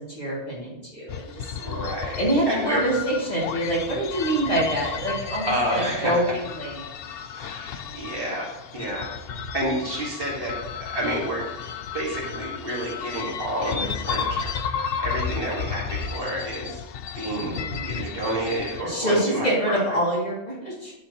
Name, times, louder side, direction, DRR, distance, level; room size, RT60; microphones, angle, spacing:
voice 1, 0.0-1.4 2.2-6.9 7.8-8.0 17.3-18.1 18.8-20.9, right 1 dB, 35° left, -6 dB, 2.8 m, -26 dB
sound 1, 1.1-18.8, left 6 dB, 65° left, 0.7 m, -33 dB
voice 2, 1.5-2.2 2.5-2.8 5.3-6.2 7.3-9.1 9.5-11.5 11.9-14.6 15.0-16.8 17.1-19.8, right 1 dB, 55° right, -3 dB, 2.1 m, -29 dB
10.0 x 7.1 x 3.0 m, 0.95 s
omnidirectional pair, 1.2 m